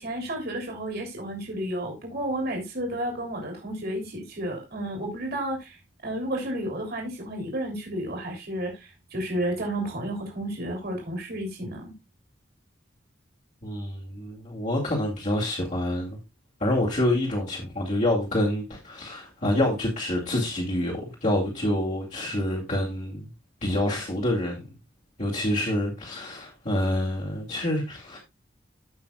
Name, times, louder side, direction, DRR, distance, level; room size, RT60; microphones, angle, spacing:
voice 1, 0.0-5.8 6.0-11.9, right 1 dB, 55° right, 3.1 m, -32 dB
voice 2, 13.6-16.2 16.6-23.3 23.6-24.6 25.2-28.2, left 1 dB, 40° left, 2.3 m, -27 dB
15.0 x 5.8 x 2.3 m
head